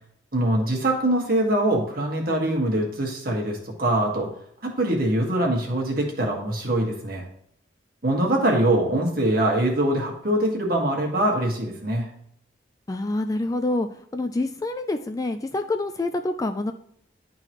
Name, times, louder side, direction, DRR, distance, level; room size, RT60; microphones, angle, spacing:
voice 1, 0.3-4.3 4.6-7.3 8.0-12.1, right 1 dB, 50° right, 0 dB, 1.6 m, -23 dB
voice 2, 12.9-16.7, left 2 dB, 20° left, 7 dB, 0.3 m, -27 dB
10.5 x 3.9 x 3.0 m, 0.70 s
head